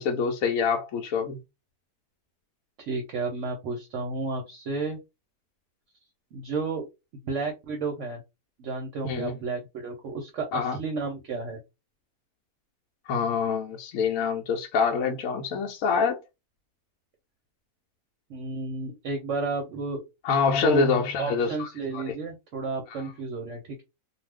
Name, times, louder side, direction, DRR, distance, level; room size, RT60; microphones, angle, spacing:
voice 1, 0.0-1.4 9.0-9.3 10.5-10.8 13.1-16.2 20.2-21.7 21.9-22.0 22.9-23.0, left 5 dB, 70° left, 0.9 m, -25 dB
voice 2, 2.8-5.0 6.3-6.9 7.2-8.2 8.6-10.5 10.7-11.6 18.3-20.0 20.6-20.9 21.2-23.8, right 4 dB, 60° right, 0.9 m, -32 dB
2.4 x 2.3 x 3.3 m
omnidirectional pair, 1.6 m